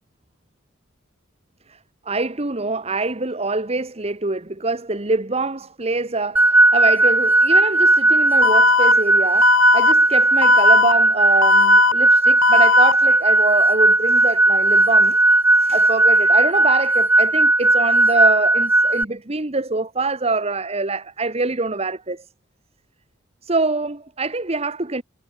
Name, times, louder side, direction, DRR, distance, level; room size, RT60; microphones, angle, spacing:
voice 1, 2.0-15.2 15.5-22.3 23.4-25.0, right 3 dB, 30° right, 1.2 m, -25 dB
sound 1, 6.4-19.0, right 2 dB, 10° right, 0.5 m, -16 dB
Alarm, 8.4-8.9 9.4-9.9 10.4-10.9 11.4-11.9 12.4-12.9, left 8 dB, 75° left, 0.5 m, -18 dB
head